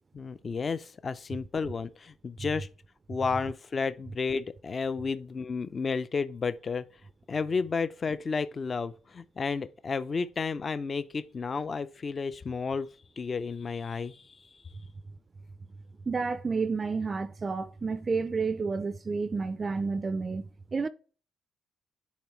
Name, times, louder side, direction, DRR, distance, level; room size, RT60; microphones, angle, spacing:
voice 1, 0.1-2.7 3.1-6.9 7.3-12.9 13.2-14.6, left 5 dB, 40° left, 0.4 m, -32 dB
voice 2, 16.1-20.9, right 4 dB, 35° right, 0.3 m, -30 dB
10.0 x 3.6 x 3.1 m
cardioid pair, 90°, 0 cm